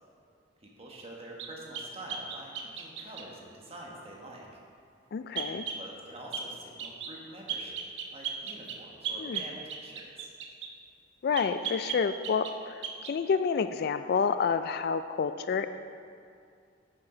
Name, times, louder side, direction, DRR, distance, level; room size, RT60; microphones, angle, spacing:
voice 1, 0.6-4.5 5.4-7.8 8.1-10.3, right 1 dB, 35° right, -2 dB, 1.3 m, -46 dB
sound 1, 1.4-3.3 5.4-5.8 6.3-6.5 6.8-7.2 7.5-10.7 11.3-12.6 12.8-13.2, right 7 dB, 75° right, 0.8 m, -37 dB
voice 2, 5.1-5.6 9.2-9.4 11.2-15.7, left 6 dB, 55° left, 11 dB, 0.3 m, -29 dB
9.4 x 7.4 x 3.8 m, 2.4 s
head